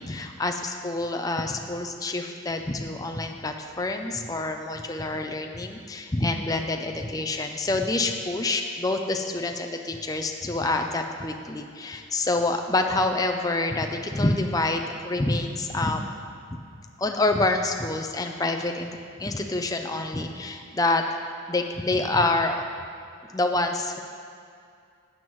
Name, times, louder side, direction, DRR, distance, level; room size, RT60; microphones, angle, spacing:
voice 1, 0.0-16.1 16.5-16.6 17.0-21.0 21.5-22.6 23.3-24.0, left 2 dB, 15° left, 4 dB, 0.5 m, -27 dB
11.5 x 8.9 x 3.1 m, 2.4 s
head